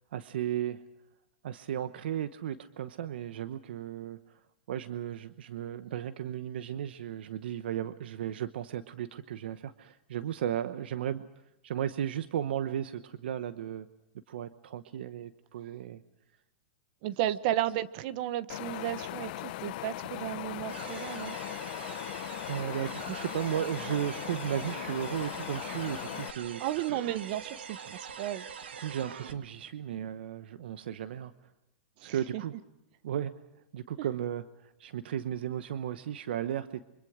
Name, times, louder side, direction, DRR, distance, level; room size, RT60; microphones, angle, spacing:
voice 1, 0.1-0.8 1.4-4.4 4.7-11.2 11.6-13.9 14.3-16.0 22.5-26.6 26.9-27.0 28.8-31.3 32.0-32.5 33.0-33.3 33.7-36.8, right 10 dB, 75° right, 12 dB, 1.0 m, -35 dB
voice 2, 17.0-21.4 26.6-28.5 32.0-32.4, right 13 dB, 50° right, 15 dB, 1.0 m, -33 dB
Wind, 18.5-26.3, left 17 dB, 55° left, 0.8 m, -39 dB
sound 1, 20.7-29.3, right 6 dB, 90° right, 2.1 m, -44 dB
25.5 x 25.0 x 5.0 m, 0.93 s
hypercardioid pair, 130°, 6 cm